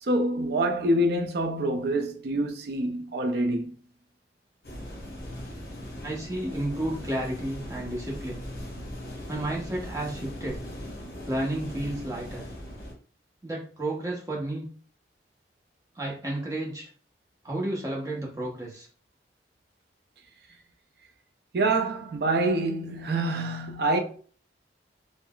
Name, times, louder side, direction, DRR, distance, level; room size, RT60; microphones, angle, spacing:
voice 1, 0.0-3.7 21.5-24.0, right 1 dB, 55° right, 0.4 m, -26 dB
sound 1, 4.6-12.9, equal, 50° left, 0.9 m, -39 dB
voice 2, 6.0-8.4 9.3-10.6 11.3-12.4 13.4-14.7 15.9-16.8 17.4-18.9, right 1 dB, 15° right, 0.8 m, -32 dB
3.7 x 2.1 x 2.2 m
head